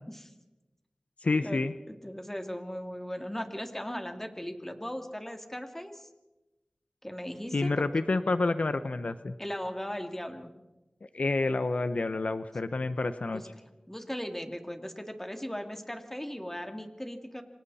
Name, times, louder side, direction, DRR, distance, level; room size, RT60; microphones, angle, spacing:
voice 1, 1.2-1.7 7.5-9.3 11.1-13.4, left 3 dB, 75° left, 11 dB, 0.9 m, -28 dB
voice 2, 1.9-6.1 7.0-7.7 9.4-10.5 13.3-13.4 13.9-17.4, equal, 15° left, 5 dB, 2.7 m, -38 dB
29.0 x 25.0 x 4.3 m, 1.0 s
wide cardioid pair, 45°, 2 cm